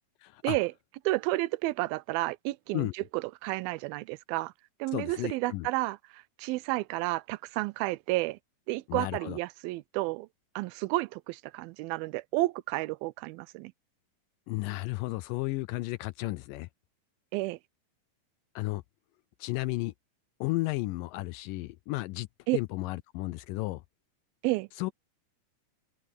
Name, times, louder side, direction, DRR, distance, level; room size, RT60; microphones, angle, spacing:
voice 1, 0.2-0.6 2.7-2.9 4.9-5.7 8.9-9.4 14.5-16.7 18.6-18.8 19.4-19.9 20.4-22.3 22.5-23.8 24.8-24.9, left 20 dB, 80° left, 2.0 m, -33 dB
voice 2, 1.1-4.5 4.8-8.4 8.7-10.3 10.6-13.7 17.3-17.6 22.5-22.6 24.4-24.7, right 20 dB, 90° right, 2.4 m, -31 dB
open air
omnidirectional pair, 4.2 m